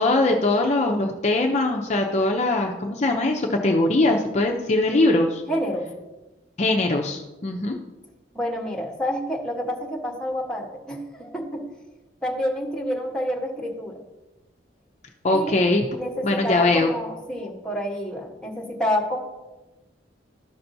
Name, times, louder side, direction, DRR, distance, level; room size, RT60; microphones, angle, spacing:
voice 1, 0.0-5.4 6.6-7.8 15.2-15.8 16.2-16.9, left 2 dB, 40° left, 2 dB, 0.6 m, -21 dB
voice 2, 5.5-5.9 8.3-11.7 12.2-14.0 15.3-15.7 16.0-19.2, equal, 5° left, -2 dB, 1.2 m, -28 dB
13.0 x 5.7 x 2.7 m, 1.1 s
head